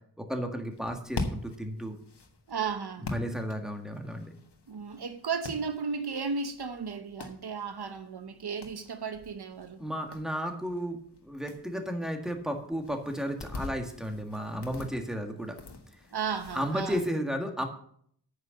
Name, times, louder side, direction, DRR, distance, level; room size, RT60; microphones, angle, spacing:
voice 1, 0.2-2.0 3.1-4.3 9.8-15.6 16.5-17.7, equal, ahead, 1.8 m, -33 dB
sound 1, 0.7-17.1, left 3 dB, 85° left, 1.6 m, -44 dB
voice 2, 2.5-3.1 4.7-9.8 16.1-17.0, right 5 dB, 75° right, 1.0 m, -34 dB
9.1 x 6.6 x 7.1 m
wide cardioid pair, 70°, 39 cm